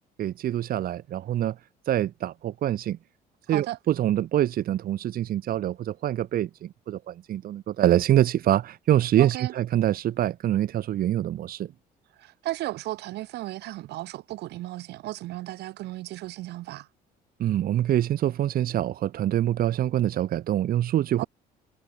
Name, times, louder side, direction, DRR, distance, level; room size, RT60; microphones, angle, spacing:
voice 1, 0.2-1.6 1.9-3.0 3.5-11.7 17.4-21.2, right 12 dB, 60° right, 1.9 m, -25 dB
voice 2, 3.5-3.8 9.2-9.5 12.1-16.9 21.2-21.3, right 16 dB, 80° right, 2.9 m, -35 dB
cardioid pair, 110°, 17 cm